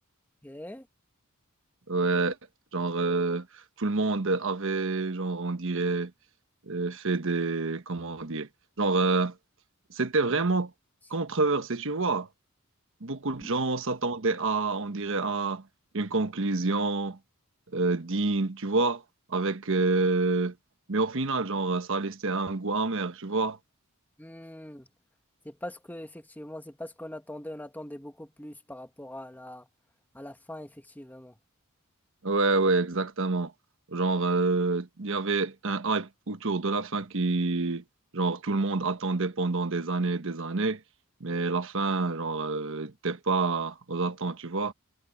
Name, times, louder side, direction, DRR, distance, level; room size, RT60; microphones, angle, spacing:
voice 1, 0.4-0.9 13.4-13.5 24.2-24.9 25.4-29.7 30.1-31.3, left 1 dB, 10° left, 1.2 m, -42 dB
voice 2, 1.9-2.4 2.7-6.1 6.7-8.5 8.8-9.3 9.9-10.7 11.1-12.3 13.0-15.6 15.9-17.2 17.7-19.0 19.3-20.5 20.9-23.6 32.2-33.5 33.9-37.8 38.1-40.8 41.2-44.7, right 3 dB, 65° right, 1.2 m, -27 dB
head